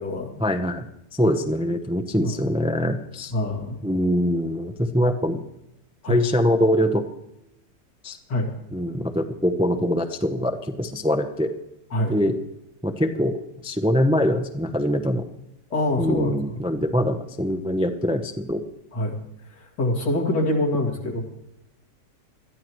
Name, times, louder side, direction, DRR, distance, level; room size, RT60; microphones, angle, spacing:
voice 1, 0.4-3.3 3.8-5.4 6.1-7.0 8.0-8.2 8.7-11.5 12.1-12.4 12.8-15.2 16.0-18.6, equal, 10° right, 4 dB, 0.3 m, -23 dB
voice 2, 3.3-3.8 6.0-6.2 8.3-8.5 11.9-12.1 15.7-16.6 18.9-19.1 19.8-21.2, left 1 dB, 85° left, -1 dB, 3.1 m, -24 dB
21.0 x 13.5 x 3.1 m, 0.87 s
omnidirectional pair, 1.8 m